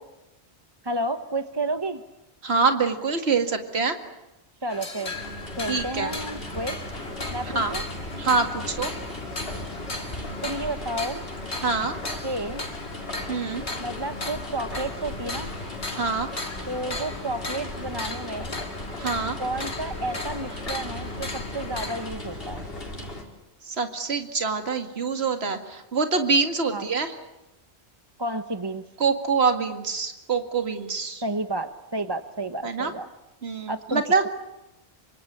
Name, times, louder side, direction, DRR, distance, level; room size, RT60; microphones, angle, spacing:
voice 1, 0.8-2.0 4.6-5.2 5.6-6.8 7.3-7.8 10.4-11.3 12.2-12.7 13.8-15.5 16.7-18.6 19.4-22.6 26.7-26.8 28.2-28.8 31.2-33.1 33.7-34.0, right 1 dB, 25° right, 9 dB, 1.1 m, -31 dB
voice 2, 2.4-4.0 5.7-6.1 7.6-7.7 8.2-8.9 11.6-12.0 13.3-13.6 15.9-16.3 19.0-19.4 23.7-27.1 29.0-31.2 32.6-32.9 33.4-34.3, right 4 dB, 70° right, 6 dB, 2.3 m, -25 dB
sound 1, 4.7-22.1, left 2 dB, 75° left, 2.9 m, -37 dB
sound 2, 5.1-23.2, left 1 dB, 60° left, 4.7 m, -37 dB
27.0 x 25.0 x 8.7 m, 0.96 s
omnidirectional pair, 1.1 m